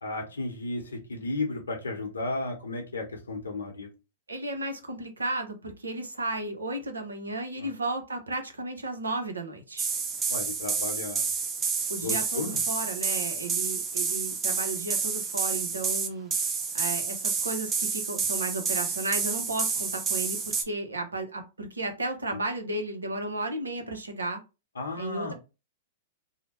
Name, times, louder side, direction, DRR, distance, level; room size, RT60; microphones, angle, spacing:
voice 1, 0.0-3.9 7.6-7.7 10.3-11.3 12.0-12.6 24.7-25.3, left 2 dB, 80° left, 0.8 m, -34 dB
voice 2, 4.3-9.9 11.9-16.3 16.7-24.4 25.0-25.3, right 2 dB, 85° right, 0.7 m, -34 dB
sound 1, 9.8-20.6, right 5 dB, 20° right, 0.5 m, -29 dB
2.8 x 2.1 x 2.9 m
figure-of-eight pair, 105°, 0 cm